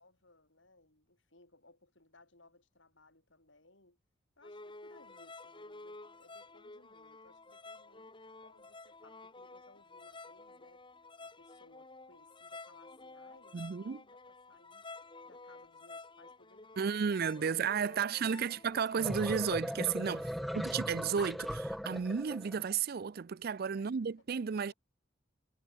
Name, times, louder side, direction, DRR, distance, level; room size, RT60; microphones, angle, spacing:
voice 1, 0.0-4.0 4.4-10.8 11.2-14.9 15.2-18.6 20.4-20.8 23.7-24.0 24.3-24.7, left 2 dB, 65° left, 6.9 m, -63 dB
sound 1, 4.4-19.8, left 3 dB, 25° left, 3.1 m, -52 dB
voice 2, 13.5-14.0 16.8-24.7, right 6 dB, 50° right, 0.4 m, -33 dB
sound 2, 18.7-22.6, equal, ahead, 0.9 m, -38 dB
head